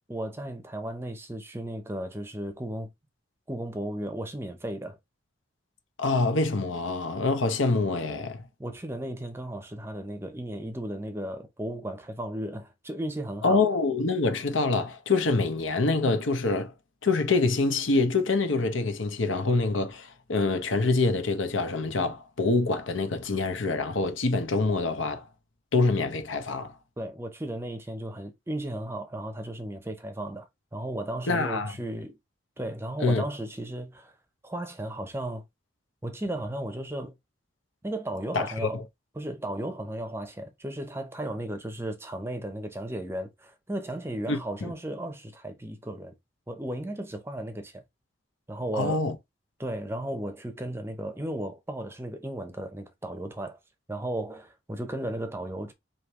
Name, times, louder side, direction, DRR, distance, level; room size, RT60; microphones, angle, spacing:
voice 1, 0.0-2.9 3.5-5.0 8.6-13.6 27.0-30.5 30.7-32.2 32.6-34.1 34.4-35.4 36.0-37.1 37.8-38.8 39.2-46.1 46.5-47.8 48.5-49.0 49.6-53.6 53.9-55.7, right 1 dB, 10° right, 0.6 m, -35 dB
voice 2, 6.0-8.5 13.4-16.7 17.0-25.3 25.7-26.7 31.3-31.7 33.0-33.2 38.3-38.8 44.3-44.7 48.7-49.2, left 3 dB, 80° left, 0.9 m, -26 dB
5.0 x 2.8 x 3.0 m
head